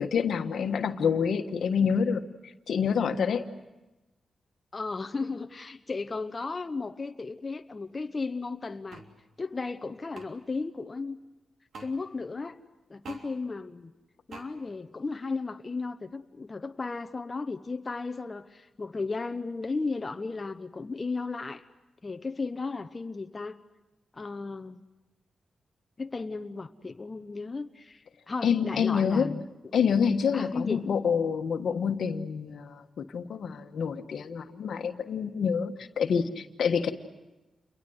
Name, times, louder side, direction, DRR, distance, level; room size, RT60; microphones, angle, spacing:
voice 1, 0.0-2.2 2.7-3.4 28.4-29.3 29.7-36.9, left 6 dB, 75° left, 7 dB, 1.4 m, -27 dB
voice 2, 4.7-9.0 9.4-11.2 11.8-12.6 12.9-13.9 14.3-21.6 22.0-23.6 24.1-24.8 26.0-29.4 30.3-30.9, left 3 dB, 35° left, 7 dB, 1.0 m, -35 dB
sound 1, 8.9-9.1 10.1-10.3 11.7-11.9 13.0-13.2 14.3-14.5, right 3 dB, 70° right, 3.2 m, -44 dB
29.0 x 22.5 x 8.0 m, 1.1 s
cardioid pair, 60°, 0 cm